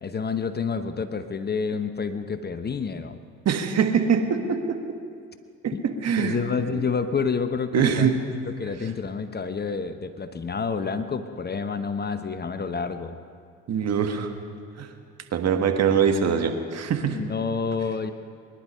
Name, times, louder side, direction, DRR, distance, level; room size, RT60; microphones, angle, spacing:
voice 1, 0.0-3.2 5.7-5.9 6.2-8.1 8.5-13.2 17.0-18.1, left 5 dB, 30° left, 10 dB, 0.9 m, -29 dB
voice 2, 3.4-4.8 5.6-6.4 6.7-6.8 7.7-8.2 13.7-14.3 14.8-14.9 15.3-17.2, right 7 dB, 45° right, 6 dB, 1.6 m, -23 dB
21.5 x 11.0 x 5.5 m, 2.3 s
hypercardioid pair, 60°, 35 cm